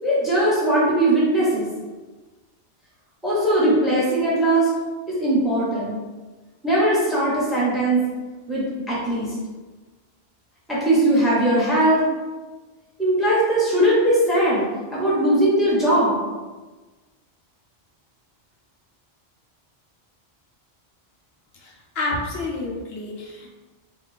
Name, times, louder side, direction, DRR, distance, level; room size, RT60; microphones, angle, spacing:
voice 1, 0.0-1.6 3.2-4.7 5.1-6.0 6.6-8.0 8.5-9.3 10.7-12.0 13.0-14.6 14.9-16.2, right 1 dB, ahead, -7 dB, 1.0 m, -19 dB
voice 2, 21.6-23.5, left 2 dB, 70° left, -2 dB, 0.8 m, -29 dB
3.4 x 2.3 x 3.2 m, 1.3 s
omnidirectional pair, 1.1 m